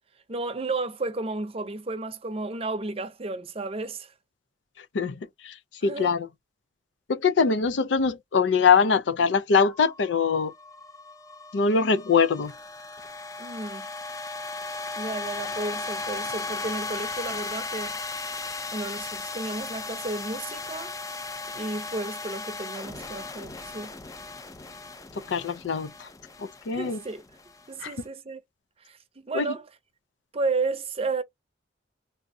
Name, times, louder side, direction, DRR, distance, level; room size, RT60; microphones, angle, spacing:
voice 1, 0.3-4.1 5.8-6.1 13.4-13.8 15.0-18.0 18.7-21.0 21.5-23.9 26.7-27.2 27.7-28.4 28.9-29.0 29.2-29.7 30.3-31.2, right 3 dB, 35° right, 0.6 m, -32 dB
voice 2, 5.8-6.3 7.1-10.5 11.5-12.5 25.3-25.9 26.7-27.0 27.8-27.9 29.3-29.4, left 5 dB, 85° left, 0.5 m, -22 dB
sound 1, 9.6-28.0, left 3 dB, 20° left, 0.4 m, -37 dB
3.4 x 2.6 x 2.6 m
head